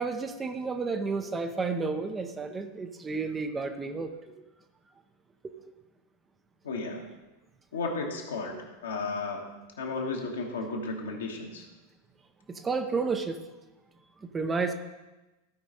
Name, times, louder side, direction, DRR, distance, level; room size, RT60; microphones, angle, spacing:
voice 1, 0.0-4.1 12.6-13.4 14.3-14.7, right 4 dB, 15° right, 6 dB, 0.7 m, -31 dB
voice 2, 6.6-7.1 7.7-9.4 9.8-11.6, left 3 dB, 65° left, 1 dB, 1.5 m, -34 dB
15.0 x 5.1 x 4.1 m, 1.1 s
figure-of-eight pair, 90°, 0 cm